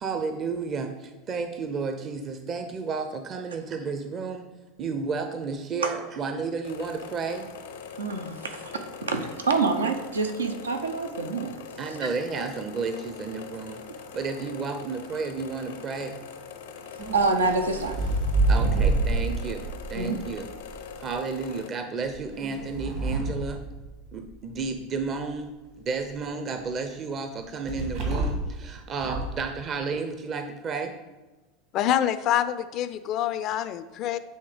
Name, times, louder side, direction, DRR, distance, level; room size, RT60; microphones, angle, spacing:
voice 1, 0.0-0.9 1.3-4.4 4.8-7.5 8.5-8.6 11.8-13.8 14.1-16.1 18.5-20.5 21.0-23.6 24.1-25.5 25.8-30.9, right 4 dB, 40° right, 7 dB, 0.6 m, -32 dB
sound 1, 6.6-21.7, left 6 dB, 80° left, 0.7 m, -42 dB
voice 2, 8.0-8.6 9.0-11.5 17.1-18.0 19.9-20.2, right 4 dB, 90° right, 6 dB, 0.6 m, -26 dB
sound 2, 17.0-21.1 22.0-24.4 27.7-28.6 29.0-29.4, right 2 dB, 65° right, 1.9 m, -28 dB
voice 3, 31.7-34.2, left 11 dB, 50° left, 13 dB, 0.4 m, -26 dB
7.9 x 3.3 x 5.0 m, 1.2 s
hypercardioid pair, 85°, 0 cm